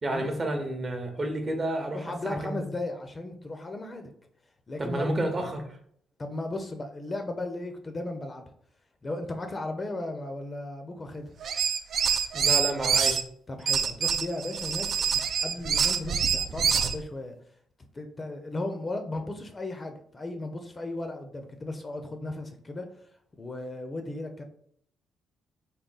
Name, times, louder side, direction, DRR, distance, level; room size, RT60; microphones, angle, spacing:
voice 1, 0.0-2.0 2.2-2.7 4.8-5.7 12.3-13.2, right 1 dB, 35° right, 4 dB, 0.8 m, -30 dB
voice 2, 1.9-4.1 4.7-5.1 6.2-8.4 9.0-11.3 13.5-17.3 17.9-22.9 23.4-24.4, left 2 dB, 30° left, 5 dB, 0.5 m, -36 dB
sound 1, 11.4-13.2 13.7-17.0, right 7 dB, 60° right, 0.3 m, -26 dB
3.7 x 2.2 x 3.8 m, 0.64 s
cardioid pair, 90°, 0 cm